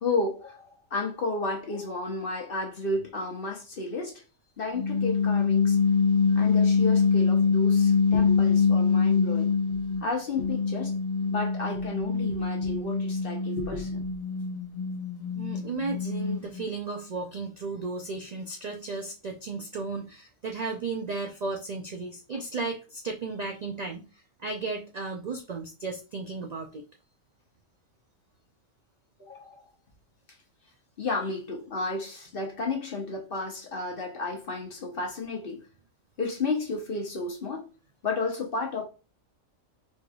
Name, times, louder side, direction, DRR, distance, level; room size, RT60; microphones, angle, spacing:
voice 1, 0.0-4.2 4.6-5.8 6.3-9.5 10.0-11.0 11.3-14.0 29.2-29.6 31.0-35.6 36.2-37.7 38.0-38.8, left 3 dB, 45° left, 1.0 m, -32 dB
sound 1, 4.8-10.0 10.4-16.6, left 5 dB, 65° left, 0.3 m, -24 dB
voice 2, 15.4-26.8, right 3 dB, 75° right, 0.3 m, -34 dB
4.4 x 3.1 x 2.3 m
omnidirectional pair, 1.4 m